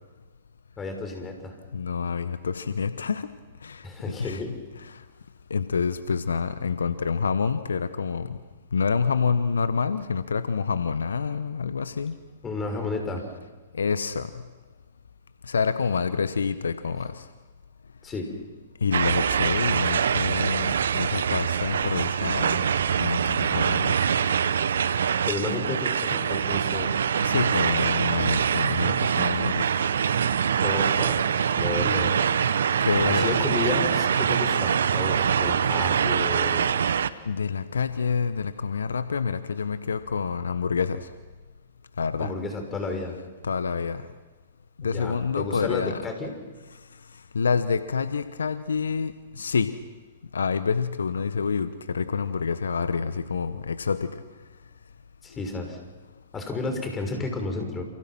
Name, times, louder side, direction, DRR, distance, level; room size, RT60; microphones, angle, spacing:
voice 1, 0.8-1.6 3.8-4.5 12.4-13.2 18.0-18.3 25.2-26.9 30.6-31.3 31.6-32.1 33.1-36.7 42.2-43.1 44.8-46.3 55.2-55.8 56.3-57.8, left 3 dB, 20° left, 4 dB, 6.4 m, -32 dB
voice 2, 1.7-3.3 3.6-3.8 4.2-4.4 4.9-5.0 5.5-8.4 8.7-12.2 13.7-14.3 15.5-17.2 18.8-22.7 23.0-24.0 27.2-29.8 32.8-33.4 37.3-41.1 42.0-42.3 43.4-44.1 44.8-46.0 47.3-49.8 50.3-54.2, left 5 dB, 80° left, 12 dB, 1.1 m, -27 dB
sound 1, 18.9-37.1, right 7 dB, 70° right, 1.1 m, -24 dB
29.0 x 28.5 x 6.2 m, 1.3 s
figure-of-eight pair, 110°, 0 cm